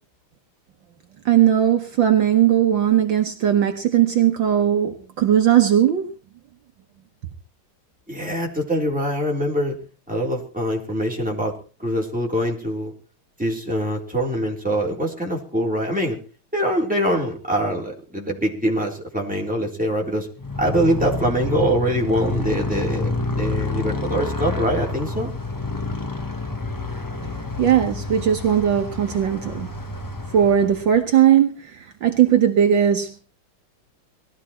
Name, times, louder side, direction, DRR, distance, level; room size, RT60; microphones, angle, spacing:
voice 1, 1.3-6.0 27.6-29.7 30.3-31.5 32.0-33.2, right 10 dB, 65° right, 1.8 m, -18 dB
voice 2, 8.1-9.8 10.1-11.5 11.8-12.9 13.4-16.2 16.5-20.3 20.6-23.1 23.4-25.3, equal, 5° right, 3.7 m, -23 dB
Motorcycle, 20.4-31.0, left 3 dB, 25° left, 0.4 m, -28 dB
19.5 x 13.5 x 4.4 m
omnidirectional pair, 2.3 m